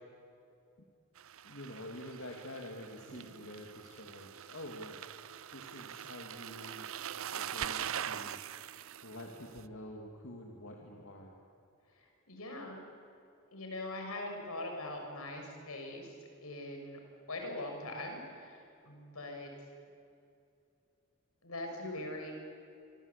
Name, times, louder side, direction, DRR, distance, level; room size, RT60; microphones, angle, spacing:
sound 1, 1.2-9.7, right 9 dB, 65° right, 0.7 m, -43 dB
voice 1, 1.4-5.0 5.5-6.9 7.3-8.4 9.0-11.3 21.8-22.1, left 1 dB, 65° left, 0 dB, 3.0 m, -47 dB
voice 2, 12.0-12.8 13.5-16.1 16.4-17.0 17.3-19.5 21.4-22.3, left 1 dB, 85° left, 3 dB, 6.6 m, -42 dB
27.5 x 25.5 x 8.6 m, 2.6 s
head